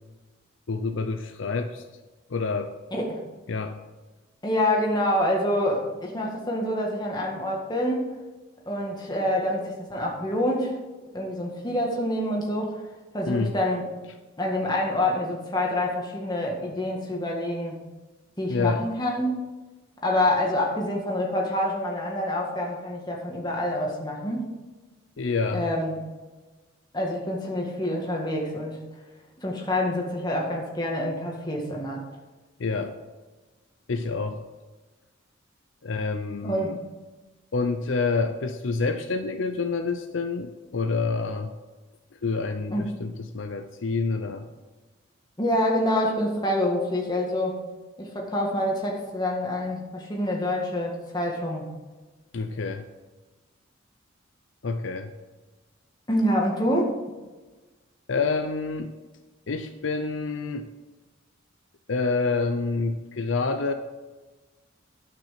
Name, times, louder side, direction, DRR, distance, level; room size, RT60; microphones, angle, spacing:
voice 1, 0.7-1.8 2.3-2.7 3.5-3.8 13.3-13.6 18.5-18.9 25.2-25.7 32.6-33.0 33.9-34.4 35.8-36.8 37.5-41.5 42.2-44.5 52.3-52.9 54.6-55.1 58.1-58.9 59.5-60.7 61.9-63.7, left 4 dB, 65° left, 7 dB, 0.6 m, -27 dB
voice 2, 2.9-3.2 4.4-8.0 8.7-10.7 11.1-12.8 13.1-13.9 14.4-17.8 18.4-19.4 20.0-24.5 25.5-26.0 26.9-28.8 29.4-32.0 36.4-36.8 42.7-42.9 45.4-47.6 48.0-51.7 56.1-56.9, left 1 dB, 20° left, -1 dB, 1.9 m, -26 dB
11.5 x 6.0 x 5.9 m, 1.2 s
head